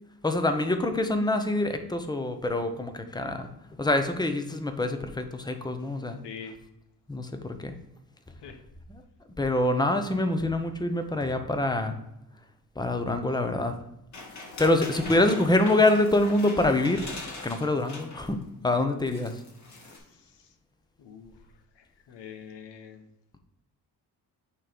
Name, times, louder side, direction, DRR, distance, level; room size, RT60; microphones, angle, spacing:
voice 1, 0.2-3.5 3.8-6.2 7.1-7.7 9.4-11.9 12.8-13.7 14.6-17.1 17.4-19.3, left 2 dB, 10° left, 7 dB, 0.8 m, -25 dB
voice 2, 6.2-6.6 8.4-8.6 19.8-20.6 21.0-23.1, left 7 dB, 80° left, 5 dB, 1.2 m, -46 dB
sound 1, 14.1-18.4 18.7-18.8 19.1-20.0, left 2 dB, 40° left, 1.9 m, -41 dB
8.5 x 3.2 x 5.1 m, 0.85 s
cardioid pair, 95°, 42 cm